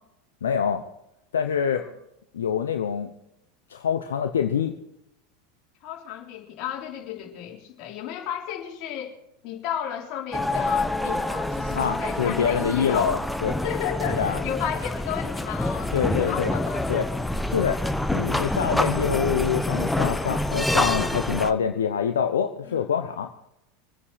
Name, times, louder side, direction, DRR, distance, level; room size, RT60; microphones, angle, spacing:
voice 1, 0.4-0.8 1.3-1.9 2.3-3.1 3.7-4.7 11.7-13.6 14.1-14.4 15.9-16.5 16.9-17.0 17.5-17.8 18.1-23.3, left 7 dB, 75° left, 6 dB, 1.0 m, -25 dB
voice 2, 5.8-9.2 9.4-13.2 13.6-16.9 22.6-22.8, left 10 dB, 45° left, 0 dB, 3.7 m, -33 dB
sound 1, 10.3-21.5, left 1 dB, 5° left, 1.0 m, -27 dB
24.0 x 9.8 x 4.8 m, 0.83 s
figure-of-eight pair, 85°, 0 cm